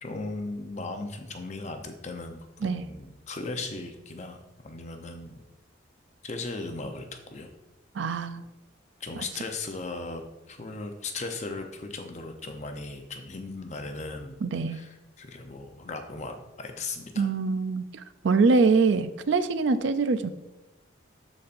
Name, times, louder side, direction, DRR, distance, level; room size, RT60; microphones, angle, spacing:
voice 1, 0.0-5.4 6.2-7.5 9.0-14.4 14.7-17.3, left 3 dB, 35° left, 5 dB, 0.7 m, -37 dB
voice 2, 7.9-8.4 14.4-14.8 17.2-20.3, right 4 dB, 65° right, 12 dB, 0.4 m, -24 dB
12.0 x 4.2 x 2.6 m, 1.0 s
head